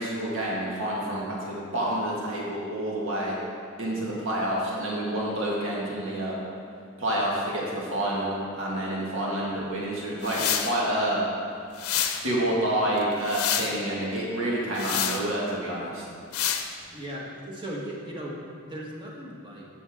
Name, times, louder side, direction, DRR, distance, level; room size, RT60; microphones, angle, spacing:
voice 1, 0.0-3.3 3.8-6.4 7.0-11.2 12.2-16.0, right 1 dB, 65° right, -5 dB, 2.0 m, -28 dB
sound 1, 10.2-10.7 11.8-12.2 13.0-13.7 14.8-15.2 16.3-16.7, left 9 dB, 85° left, 0.7 m, -27 dB
voice 2, 16.9-19.7, equal, 20° right, -4 dB, 1.5 m, -37 dB
12.0 x 7.1 x 3.6 m, 2.3 s
head